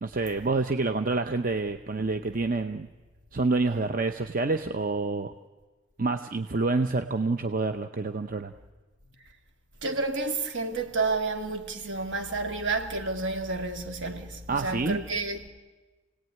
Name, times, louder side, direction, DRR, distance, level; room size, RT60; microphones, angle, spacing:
voice 1, 0.0-2.9 3.3-5.3 6.0-8.5 14.5-15.0, right 3 dB, 45° right, 0.8 m, -27 dB
voice 2, 9.8-15.5, right 3 dB, 65° right, 2.4 m, -30 dB
29.0 x 18.5 x 9.3 m
head